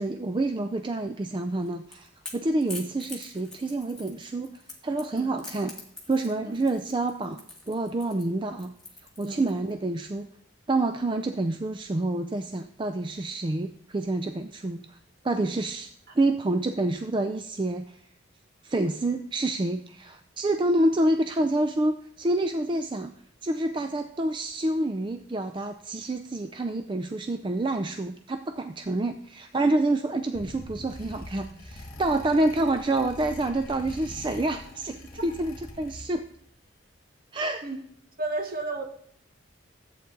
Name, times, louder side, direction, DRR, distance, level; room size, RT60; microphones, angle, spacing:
voice 1, 0.0-5.7 6.1-8.7 9.2-10.3 10.7-15.0 15.2-15.9 16.2-18.0 18.6-23.1 23.4-36.2 37.3-37.6, right 2 dB, 25° right, 0.4 m, -28 dB
Crackle / Crack, 1.5-9.7, left 2 dB, 5° left, 1.9 m, -44 dB
sound 1, 30.3-36.4, left 1 dB, 45° left, 1.5 m, -43 dB
voice 2, 38.2-38.8, right 2 dB, 50° right, 1.2 m, -32 dB
13.5 x 8.5 x 3.9 m
head